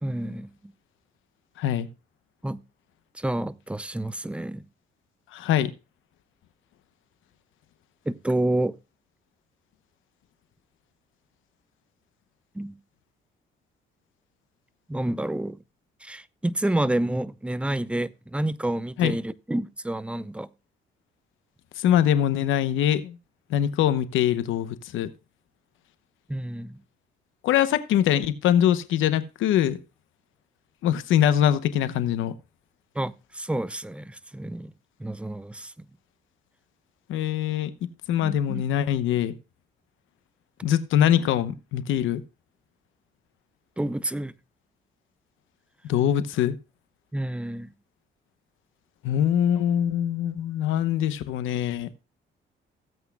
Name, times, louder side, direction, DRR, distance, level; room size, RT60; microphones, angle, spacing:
voice 1, 0.0-0.5 2.4-2.6 3.1-4.6 8.1-8.7 12.5-12.8 14.9-15.6 16.0-20.5 26.3-26.8 33.0-34.7 35.0-35.7 38.2-38.6 43.8-44.3 47.1-47.7, right 1 dB, 5° right, 0.5 m, -29 dB
voice 2, 1.6-1.9 5.3-5.7 19.0-19.1 21.8-23.2 23.5-25.1 27.4-29.8 30.8-32.3 37.1-37.7 38.1-39.3 40.6-42.2 45.8-46.5 49.0-51.9, left 10 dB, 85° left, 0.9 m, -23 dB
16.5 x 8.2 x 2.3 m
cardioid pair, 90°, 20 cm